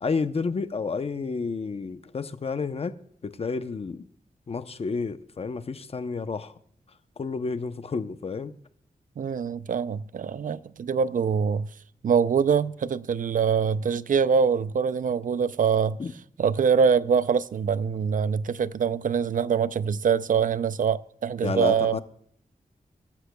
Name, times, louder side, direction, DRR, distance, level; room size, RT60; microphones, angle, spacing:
voice 1, 0.0-3.0 3.2-4.0 4.5-6.5 7.2-8.5 16.0-16.1 21.4-22.0, left 4 dB, 40° left, 0.7 m, -30 dB
voice 2, 9.2-11.7 12.0-16.0 16.4-22.0, right 6 dB, 60° right, 0.5 m, -24 dB
23.0 x 13.0 x 2.3 m
wide cardioid pair, 135°, 15 cm